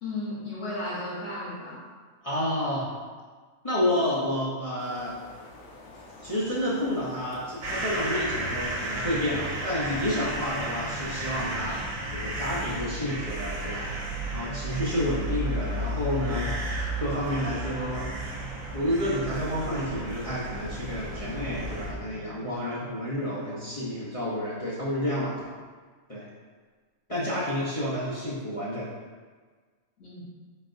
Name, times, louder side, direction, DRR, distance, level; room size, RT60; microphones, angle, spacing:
voice 1, 0.0-1.8 30.0-30.3, left 2 dB, 65° left, -7 dB, 1.2 m, -34 dB
voice 2, 2.2-2.8 3.6-5.2 6.2-14.0 14.3-18.1 18.7-25.3 26.1-26.2 27.1-28.9, left 1 dB, 30° left, -9 dB, 0.7 m, -30 dB
sound 1, 4.8-11.8, left 2 dB, 85° left, 1.2 m, -47 dB
sound 2, 7.6-21.9, right 1 dB, 80° right, 1.2 m, -33 dB
Bowed string instrument, 20.8-25.5, equal, 25° right, 0.6 m, -48 dB
4.8 x 4.1 x 2.6 m, 1.5 s
omnidirectional pair, 1.4 m